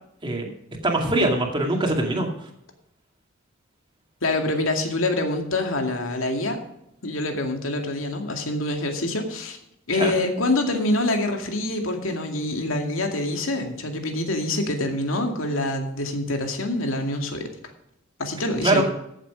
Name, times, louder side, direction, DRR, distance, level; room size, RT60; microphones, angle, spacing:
voice 1, 0.8-2.3 9.9-10.1 18.6-18.8, right 2 dB, 25° right, 1 dB, 2.3 m, -22 dB
voice 2, 4.2-6.6 7.0-9.6 9.9-17.5 18.2-18.8, left 2 dB, 85° left, 4 dB, 2.2 m, -26 dB
14.5 x 7.6 x 5.0 m, 0.78 s
head